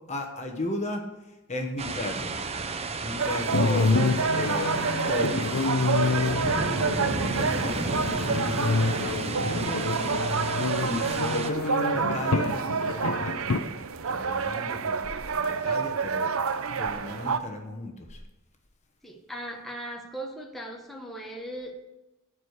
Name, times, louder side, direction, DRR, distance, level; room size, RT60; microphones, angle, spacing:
voice 1, 0.1-2.4 3.0-5.5 6.0-15.1 15.4-18.2, left 2 dB, 30° left, 3 dB, 1.2 m, -36 dB
sound 1, 1.8-11.5, right 3 dB, 30° right, 0.6 m, -32 dB
sound 2, 3.2-17.4, right 5 dB, 70° right, 0.6 m, -29 dB
sound 3, 3.5-13.6, left 3 dB, 75° left, 0.6 m, -28 dB
voice 2, 19.0-21.8, right 1 dB, ahead, 0 dB, 1.3 m, -38 dB
14.0 x 4.9 x 8.1 m, 1.0 s
head